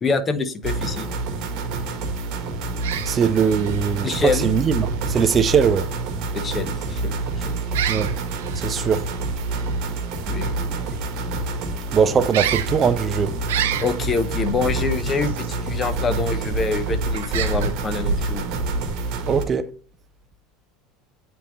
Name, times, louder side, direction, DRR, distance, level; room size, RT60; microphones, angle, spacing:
voice 1, 0.0-1.1 4.0-4.5 6.3-7.2 7.4-7.5 10.3-11.0 13.8-18.4, left 4 dB, 25° left, 0.7 m, -26 dB
sound 1, 0.6-19.4, right 2 dB, 55° right, 1.1 m, -27 dB
sound 2, 2.7-19.4, right 7 dB, 90° right, 0.6 m, -33 dB
voice 2, 3.0-5.9 7.9-8.1 8.6-9.1 11.9-13.3 19.3-19.7, right 7 dB, 30° right, 0.3 m, -20 dB
8.9 x 3.5 x 3.0 m
supercardioid pair, 115°, 0 cm